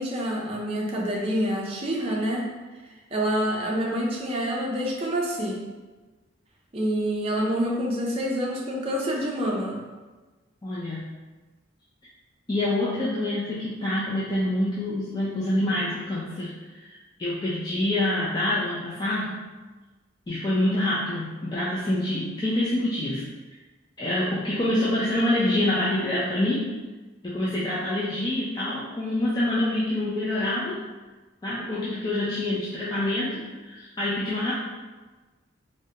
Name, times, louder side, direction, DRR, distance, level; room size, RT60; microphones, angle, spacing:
voice 1, 0.0-2.4 3.1-5.6 6.7-9.8, equal, 30° right, -3 dB, 0.5 m, -27 dB
voice 2, 10.6-11.1 12.5-19.5 20.3-23.2 24.0-26.8 27.2-30.8 31.4-34.5, left 1 dB, 20° left, -8 dB, 0.4 m, -26 dB
3.5 x 2.1 x 2.8 m, 1.2 s
head